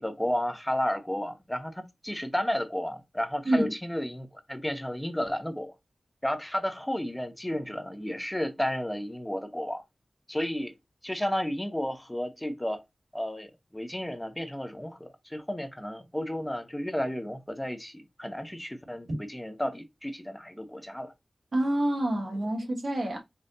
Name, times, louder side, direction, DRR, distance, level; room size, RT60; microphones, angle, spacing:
voice 1, 0.0-5.7 6.2-9.8 10.3-10.7 11.0-12.8 13.1-21.1, equal, 10° left, 0.8 m, -32 dB
voice 2, 21.5-23.2, right 1 dB, 65° right, 1.3 m, -27 dB
5.2 x 2.5 x 2.7 m
cardioid pair, 50°, 0 cm